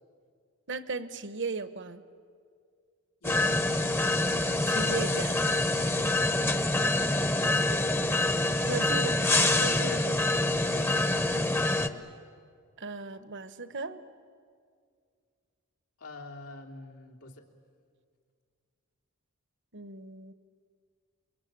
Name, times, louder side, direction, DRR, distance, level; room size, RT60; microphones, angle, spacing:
voice 1, 0.7-2.0 4.7-5.4 8.6-9.2 9.5-10.2 12.8-14.0 19.7-20.3, right 4 dB, 55° right, 12 dB, 1.2 m, -36 dB
voice 2, 3.2-3.7 7.7-8.0 10.7-11.0 16.0-17.5, left 2 dB, 90° left, -1 dB, 3.1 m, -44 dB
sound 1, 3.2-11.9, left 2 dB, 10° left, 0.9 m, -26 dB
29.0 x 22.5 x 8.9 m, 2.1 s
head